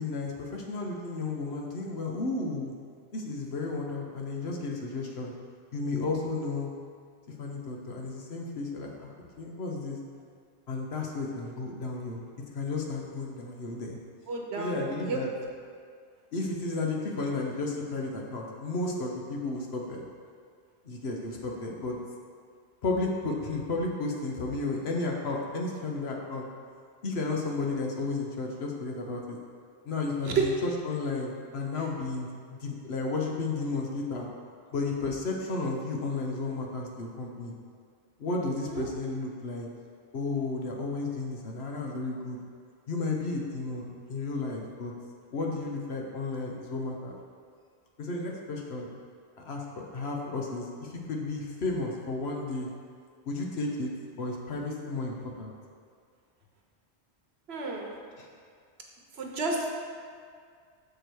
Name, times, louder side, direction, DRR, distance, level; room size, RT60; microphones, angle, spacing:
voice 1, 0.0-2.7 3.1-5.3 5.7-6.7 7.4-10.0 10.7-12.2 12.5-14.0 14.6-15.3 16.3-20.0 20.8-21.9 22.8-26.4 27.0-29.4 29.8-30.5 30.8-34.3 34.7-37.6 38.2-39.7 40.1-42.4 42.9-44.9 45.3-47.2 48.0-48.9 49.4-52.7 53.3-53.9 54.2-55.5 58.2-58.3, left 3 dB, 65° left, 0 dB, 1.1 m, -33 dB
voice 2, 14.3-15.2 30.2-30.4 38.7-38.9 57.5-57.9 59.1-59.7, right 4 dB, 65° right, 0 dB, 1.1 m, -31 dB
6.8 x 4.8 x 4.5 m, 2.1 s
omnidirectional pair, 1.2 m